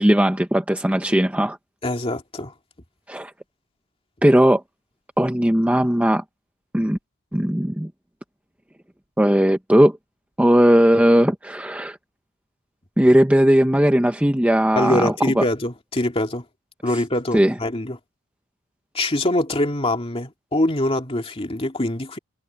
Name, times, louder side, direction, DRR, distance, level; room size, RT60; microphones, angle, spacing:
voice 1, 0.0-1.6 3.1-3.3 4.2-4.6 5.2-6.2 6.7-7.0 7.3-7.9 9.2-10.0 10.4-12.0 13.0-15.4 17.3-17.5, equal, 5° right, 0.7 m, -17 dB
voice 2, 1.8-2.5 14.8-16.4 16.8-18.0 18.9-22.2, left 1 dB, 25° left, 2.5 m, -24 dB
head